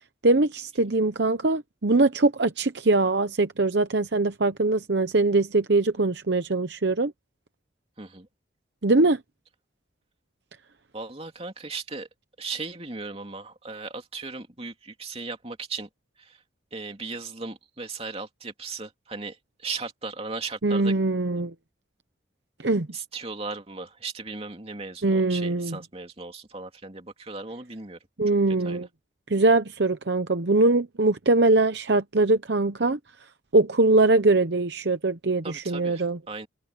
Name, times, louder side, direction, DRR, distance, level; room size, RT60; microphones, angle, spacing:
voice 1, 0.2-7.1 8.8-9.2 20.6-21.5 22.6-22.9 25.0-25.8 28.2-28.9 29.3-33.0 33.5-36.2, right 2 dB, 60° right, 0.9 m, -22 dB
voice 2, 8.0-8.3 10.9-12.1 12.4-15.9 16.2-16.4 16.7-20.9 22.9-28.0 28.3-28.9 35.4-36.5, right 4 dB, 30° right, 2.8 m, -37 dB
head